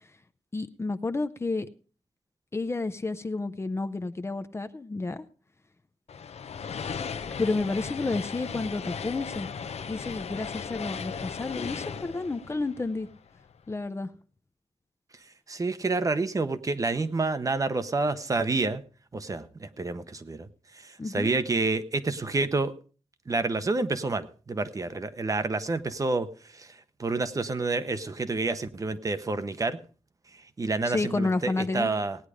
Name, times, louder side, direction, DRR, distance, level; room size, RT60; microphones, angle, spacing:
voice 1, 0.5-1.7 2.5-5.2 7.4-9.5 9.9-13.1 13.7-14.1 21.0-21.3 30.8-31.9, left 3 dB, 25° left, 10 dB, 0.6 m, -30 dB
sound 1, 6.1-13.5, left 6 dB, 80° left, 0.8 m, -37 dB
voice 2, 15.5-18.8 19.1-20.5 20.8-22.7 23.3-26.3 26.5-26.7 27.0-29.8 30.6-32.2, right 3 dB, 30° right, 11 dB, 0.8 m, -28 dB
17.0 x 9.7 x 4.9 m, 0.39 s
wide cardioid pair, 180°, 11 cm